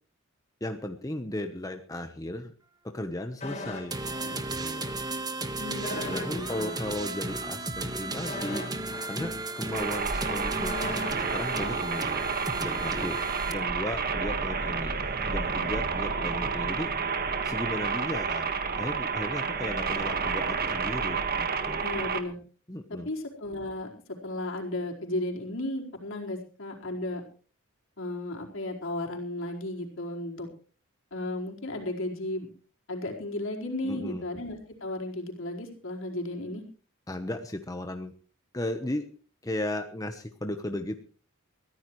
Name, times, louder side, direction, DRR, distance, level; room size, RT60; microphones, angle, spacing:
voice 1, 0.6-2.5 2.8-4.8 6.1-8.6 9.1-10.8 11.2-12.1 12.6-13.2 13.5-15.0 15.3-16.9 17.4-21.8 22.7-23.1 33.8-34.3 37.1-38.1 38.5-39.0 39.4-41.0, left 1 dB, 15° left, 6 dB, 1.0 m, -35 dB
sound 1, 3.4-5.0 5.3-5.4 5.8-12.9 13.2-13.3, left 2 dB, 30° left, 5.0 m, -41 dB
sound 2, 3.9-13.5, right 2 dB, 20° right, 1.3 m, -34 dB
voice 2, 5.6-6.8 21.8-22.4 22.9-23.9 24.2-27.2 28.0-30.5 31.1-32.5 32.9-36.6, left 1 dB, 60° left, 0 dB, 4.6 m, -34 dB
sound 3, 9.7-22.2, right 5 dB, 45° right, 1.6 m, -30 dB
23.0 x 15.0 x 3.2 m, 0.39 s
head